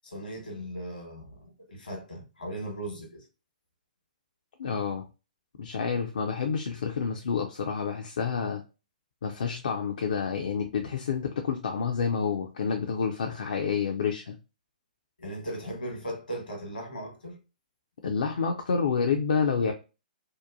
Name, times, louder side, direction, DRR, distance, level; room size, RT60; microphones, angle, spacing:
voice 1, 0.0-3.3 15.2-17.4, right 1 dB, 80° left, 1.2 m, -38 dB
voice 2, 4.6-5.0 5.6-8.6 9.2-14.4 18.0-19.7, left 6 dB, 60° left, 0.4 m, -28 dB
2.8 x 2.2 x 2.4 m
figure-of-eight pair, 120°, 5 cm